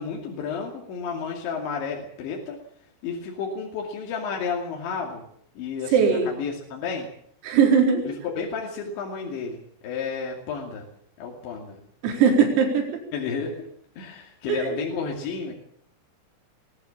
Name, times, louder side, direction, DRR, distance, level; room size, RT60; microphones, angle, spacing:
voice 1, 0.0-2.6 3.0-5.2 5.6-7.1 8.0-10.8 11.2-11.8 13.1-13.7 14.0-15.5, left 5 dB, 65° left, 0 dB, 4.7 m, -31 dB
voice 2, 5.9-6.3 7.4-8.1 12.0-12.9 14.5-14.7, right 6 dB, 90° right, 2 dB, 7.0 m, -19 dB
21.5 x 18.5 x 7.2 m, 0.65 s
omnidirectional pair, 6.0 m